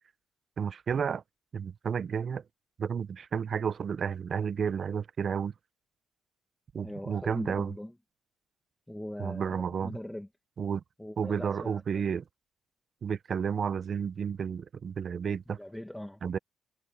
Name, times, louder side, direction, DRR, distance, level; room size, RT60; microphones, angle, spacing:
voice 1, 0.6-1.2 1.5-2.4 2.8-5.5 6.7-7.7 9.2-10.0 10.6-10.8 11.2-12.2 13.0-15.6 16.2-16.4, right 7 dB, 50° right, 0.7 m, -31 dB
voice 2, 6.8-7.9 8.9-10.3 11.0-12.0 15.6-16.2, left 1 dB, 5° left, 1.9 m, -41 dB
cardioid pair, 90°, 0 cm